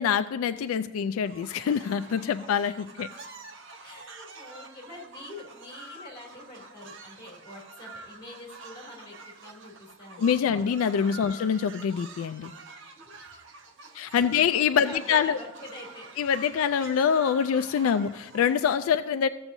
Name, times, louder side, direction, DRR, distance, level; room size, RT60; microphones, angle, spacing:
voice 1, 0.0-3.1 10.2-12.5 13.9-15.4 16.2-19.3, left 7 dB, 75° left, 10 dB, 0.3 m, -25 dB
sound 1, 1.3-18.7, right 3 dB, 60° right, 0.8 m, -47 dB
voice 2, 3.8-10.6 11.1-11.3 13.0-13.3 14.1-16.1 18.9-19.1, left 1 dB, 20° left, -3 dB, 2.8 m, -46 dB
15.0 x 7.0 x 2.7 m, 1.2 s
head